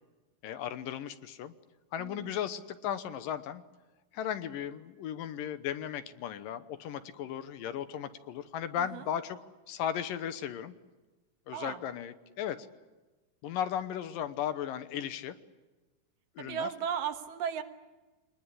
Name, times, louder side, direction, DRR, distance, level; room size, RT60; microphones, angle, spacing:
voice 1, 0.4-1.5 1.9-3.6 4.1-9.4 9.7-10.7 11.5-12.6 13.4-15.4 16.4-16.7, left 9 dB, 75° left, 12 dB, 2.6 m, -36 dB
voice 2, 2.0-2.4 8.8-9.0 11.5-11.8 16.4-17.6, right 8 dB, 70° right, 7 dB, 3.0 m, -35 dB
25.0 x 20.5 x 9.9 m, 1.2 s
omnidirectional pair, 4.2 m